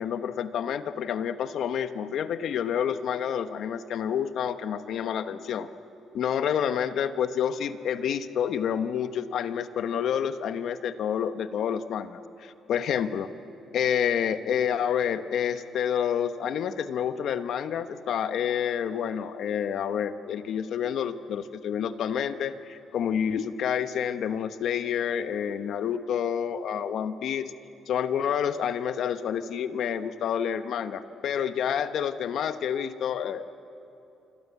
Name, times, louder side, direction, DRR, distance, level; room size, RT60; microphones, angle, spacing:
voice 1, 0.0-5.7 6.1-13.3 13.7-27.5 27.9-33.4, left 8 dB, 70° left, 10 dB, 1.1 m, -28 dB
27.5 x 26.0 x 8.3 m, 2.8 s
cardioid pair, 90°, 0 cm